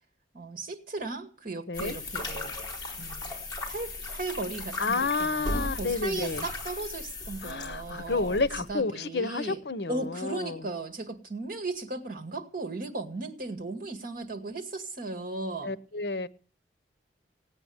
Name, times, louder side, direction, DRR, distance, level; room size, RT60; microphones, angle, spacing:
voice 1, 0.3-2.5 3.0-3.3 3.7-8.4 8.7-9.6 9.9-15.7, right 3 dB, 50° right, 2.1 m, -36 dB
voice 2, 1.7-2.0 4.8-6.4 7.4-10.6 15.6-16.3, left 3 dB, 65° left, 0.8 m, -30 dB
sound 1, 1.7-8.7, left 2 dB, 25° left, 4.4 m, -37 dB
18.0 x 8.9 x 8.0 m
head